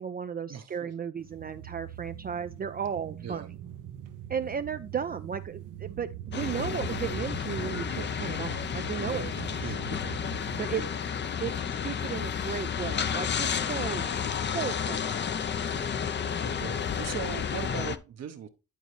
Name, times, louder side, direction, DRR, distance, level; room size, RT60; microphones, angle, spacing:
voice 1, 0.0-3.5 4.3-9.5 10.3-10.8 11.4-14.1 14.5-15.1, right 7 dB, 30° right, 0.4 m, -35 dB
sound 1, 1.2-10.6, right 11 dB, 90° right, 1.0 m, -42 dB
sound 2, 6.3-18.0, left 7 dB, 35° left, 0.6 m, -31 dB
voice 2, 9.0-10.0 10.7-11.0 13.9-14.3 15.7-16.0 16.4-18.5, right 8 dB, 60° right, 1.0 m, -40 dB
11.0 x 4.0 x 3.2 m
cardioid pair, 90°, 30 cm